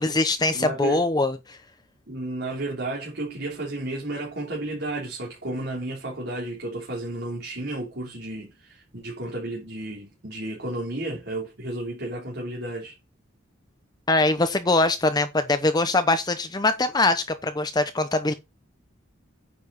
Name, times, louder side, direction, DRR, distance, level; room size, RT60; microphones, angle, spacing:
voice 1, 0.0-1.6 14.1-18.3, left 2 dB, 20° left, 0.7 m, -22 dB
voice 2, 0.5-1.0 2.1-13.0, right 2 dB, 55° right, 3.5 m, -32 dB
9.7 x 7.0 x 4.1 m
head